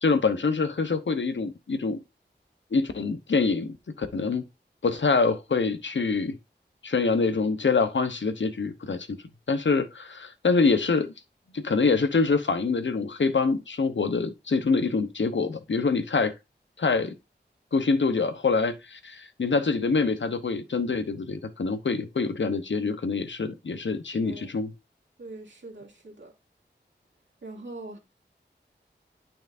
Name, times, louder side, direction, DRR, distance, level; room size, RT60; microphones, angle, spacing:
voice 1, 0.0-2.0 2.7-4.4 4.8-6.4 6.8-9.2 9.5-11.1 11.5-16.3 16.8-17.1 17.7-24.7, left 4 dB, 80° left, 1.0 m, -25 dB
voice 2, 24.2-24.5 25.2-26.3 27.4-28.0, right 2 dB, 85° right, 2.6 m, -42 dB
9.1 x 5.9 x 2.6 m
cardioid pair, 40°, 19 cm